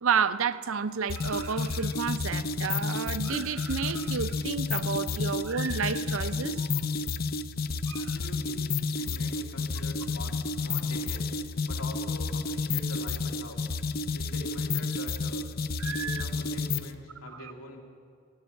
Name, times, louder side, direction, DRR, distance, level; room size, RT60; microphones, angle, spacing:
voice 1, 0.0-6.7 7.9-8.2 15.8-16.2, right 6 dB, 75° right, 0.6 m, -31 dB
sound 1, 1.1-16.9, left 4 dB, 45° left, 0.5 m, -31 dB
voice 2, 7.9-8.7 9.0-11.4 11.7-13.6 14.1-15.5 15.9-17.8, left 1 dB, 90° left, 2.6 m, -44 dB
14.5 x 12.0 x 8.4 m
head